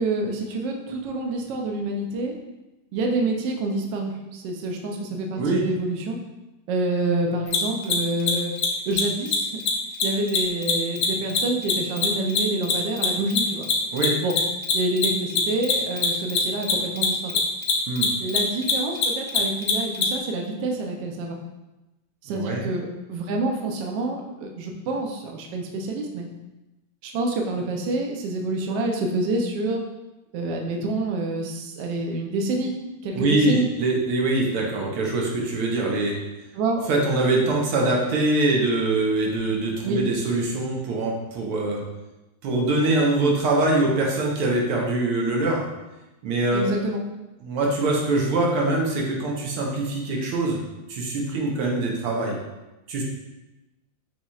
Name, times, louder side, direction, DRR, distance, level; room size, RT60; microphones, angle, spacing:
voice 1, 0.0-2.3 2.9-6.2 6.7-8.5 8.9-9.5 10.0-13.7 14.2-14.4 14.7-17.4 18.2-21.4 22.2-26.3 27.0-29.8 30.3-32.7 33.0-33.7 36.5-36.8 39.8-40.0 46.5-47.0, right 2 dB, 70° right, 2 dB, 1.1 m, -27 dB
Mechanisms, 7.5-7.6 7.8-8.3 8.6-8.7 8.9-9.0 9.3-9.4 9.6-9.7 10.0-12.7 13.0-20.0, left 8 dB, 65° left, 1.2 m, -22 dB
voice 2, 22.3-22.6 33.1-36.1 36.9-41.8 42.4-45.6 46.2-46.8 47.4-50.6 50.9-52.4 52.9-53.0, right 2 dB, 90° right, -1 dB, 1.8 m, -23 dB
6.9 x 3.0 x 2.3 m, 1.0 s
omnidirectional pair, 2.4 m